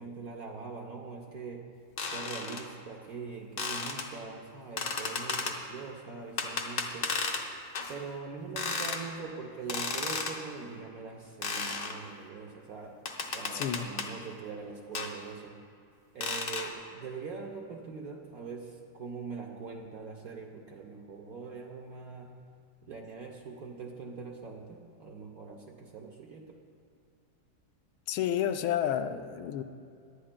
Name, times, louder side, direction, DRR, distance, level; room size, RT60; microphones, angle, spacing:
voice 1, 0.0-1.7 2.1-7.2 7.9-13.0 13.3-15.6 16.1-22.4 22.8-26.6, right 5 dB, 60° right, 1 dB, 1.0 m, -42 dB
sound 1, 2.0-2.6 3.6-4.1 4.8-5.6 6.4-7.4 7.7-7.9 8.6-9.0 9.7-10.4 11.4-12.0 13.1-14.1 14.9-15.1 16.2-16.7, left 4 dB, 50° left, 1.2 m, -33 dB
voice 2, 13.5-13.9 28.1-29.6, left 10 dB, 85° left, 8 dB, 1.5 m, -30 dB
23.0 x 11.0 x 2.2 m, 2.5 s
omnidirectional pair, 2.3 m